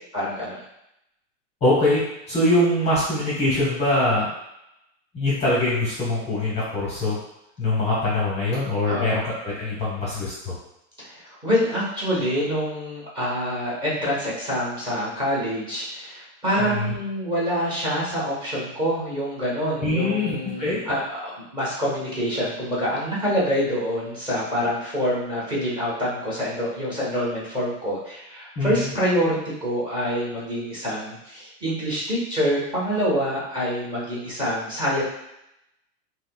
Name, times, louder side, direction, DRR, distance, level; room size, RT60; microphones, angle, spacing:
voice 1, 0.1-0.6 8.9-9.2 11.0-35.0, equal, 15° right, -8 dB, 1.1 m, -26 dB
voice 2, 1.6-4.3 5.1-7.2 7.6-10.5 16.6-16.9 19.8-20.8 28.6-28.9, left 1 dB, 15° left, -7 dB, 0.8 m, -23 dB
5.2 x 2.1 x 2.3 m, 0.84 s
supercardioid pair, 150°, 36 cm